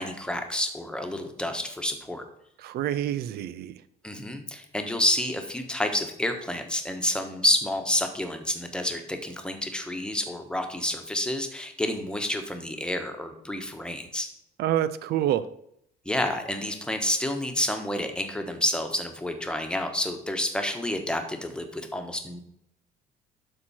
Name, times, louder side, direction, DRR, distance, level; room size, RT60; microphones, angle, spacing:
voice 1, 0.0-2.2 4.0-14.3 16.0-22.4, left 1 dB, 5° left, 5 dB, 1.3 m, -29 dB
voice 2, 2.6-3.8 14.6-15.5, right 11 dB, 70° right, 15 dB, 0.5 m, -27 dB
12.0 x 4.4 x 4.3 m, 0.74 s
cardioid pair, 110°, 17 cm